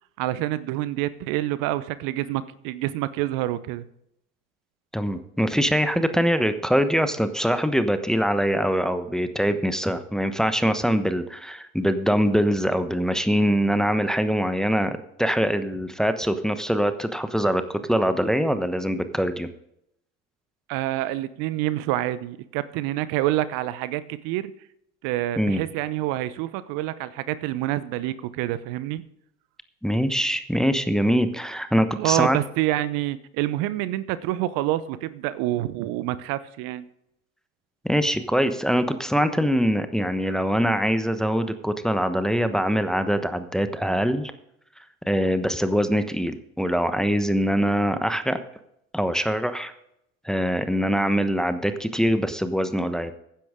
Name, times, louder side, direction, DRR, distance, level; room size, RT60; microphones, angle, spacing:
voice 1, 0.2-3.8 20.7-24.5 25.0-29.0 32.0-36.8, right 15 dB, 60° right, 16 dB, 0.9 m, -27 dB
voice 2, 4.9-19.5 25.4-25.6 29.8-32.4 37.8-44.3 45.1-48.4 48.9-49.7 50.2-53.1, equal, ahead, 9 dB, 1.0 m, -23 dB
15.0 x 10.5 x 3.7 m, 0.77 s
hypercardioid pair, 85°, 39 cm